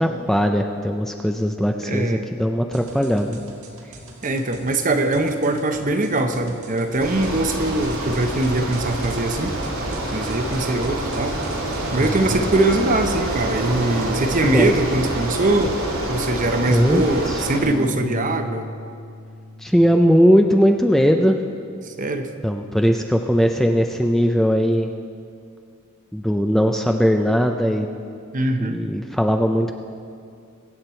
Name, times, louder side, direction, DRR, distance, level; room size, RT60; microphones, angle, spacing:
voice 1, 0.0-3.4 12.0-12.1 14.4-14.8 16.6-17.4 19.6-21.4 22.4-24.9 26.1-27.9 28.6-29.7, equal, ahead, 4 dB, 0.4 m, -19 dB
voice 2, 1.8-2.2 4.2-9.6 10.1-11.3 11.9-15.8 16.1-18.7 21.8-22.3 28.3-28.8, right 2 dB, 40° right, 7 dB, 0.9 m, -22 dB
sound 1, 2.7-12.3, right 1 dB, 85° right, 1.9 m, -39 dB
Bicycle, 7.0-17.6, right 1 dB, 70° right, 2.7 m, -27 dB
sound 2, 17.6-23.8, left 2 dB, 45° left, 1.4 m, -39 dB
23.0 x 8.0 x 4.4 m, 2.3 s
head